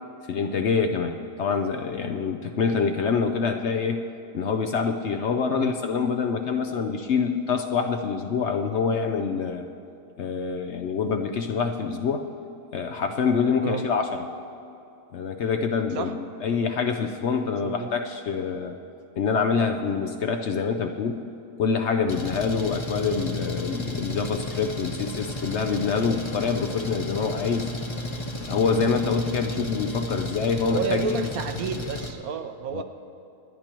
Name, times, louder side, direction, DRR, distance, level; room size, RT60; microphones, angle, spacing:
voice 1, 0.3-4.0 4.3-9.7 10.2-12.3 12.7-14.3 15.1-18.8 19.2-21.2 21.6-27.7 28.4-31.3 32.7-32.8, left 5 dB, 60° left, 6 dB, 0.8 m, -26 dB
Engine, 22.1-32.1, left 1 dB, 25° left, 0.7 m, -33 dB
voice 2, 30.7-32.8, right 6 dB, 75° right, 8 dB, 1.2 m, -30 dB
27.5 x 10.0 x 3.0 m, 2.7 s
omnidirectional pair, 1.6 m